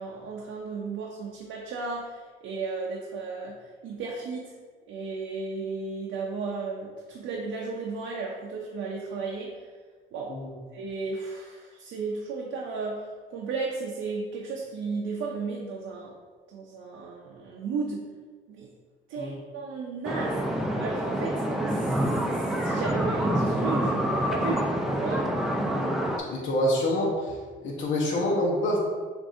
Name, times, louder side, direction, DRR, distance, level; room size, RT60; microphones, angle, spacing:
voice 1, 0.0-4.5 4.9-9.6 10.1-10.4 10.7-16.2 16.5-18.1 18.5-18.7 19.1-25.3, right 4 dB, 85° right, -2 dB, 0.6 m, -34 dB
sound 1, 20.0-26.2, right 1 dB, ahead, 0.5 m, -27 dB
voice 2, 26.3-27.3 27.6-28.8, left 1 dB, 75° left, -3 dB, 1.0 m, -26 dB
7.0 x 2.6 x 2.6 m, 1.5 s
cardioid pair, 90°, 20 cm